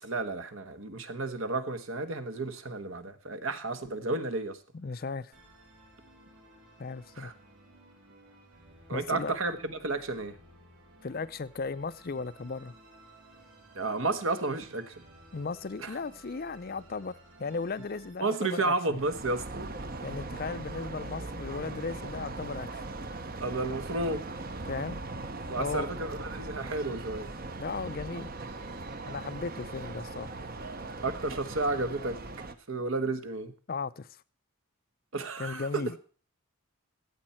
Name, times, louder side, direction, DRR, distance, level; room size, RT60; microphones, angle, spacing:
voice 1, 0.0-4.6 7.2-7.3 8.9-10.4 13.7-15.0 15.8-16.0 18.2-19.6 23.4-24.2 25.5-27.3 31.0-32.2 32.7-33.5 35.1-35.8, right 3 dB, 65° right, 1.3 m, -32 dB
voice 2, 4.7-5.3 6.8-7.3 8.9-9.4 11.0-12.7 15.3-19.0 20.0-22.8 24.7-25.0 25.6-25.9 27.6-28.3 29.1-30.3 33.7-34.2 35.4-36.0, left 4 dB, 40° left, 0.5 m, -36 dB
Musical instrument, 5.3-18.1, right 1 dB, 80° right, 4.6 m, -56 dB
sound 1, 18.9-32.5, right 2 dB, 40° right, 0.9 m, -39 dB
15.0 x 8.6 x 4.3 m
head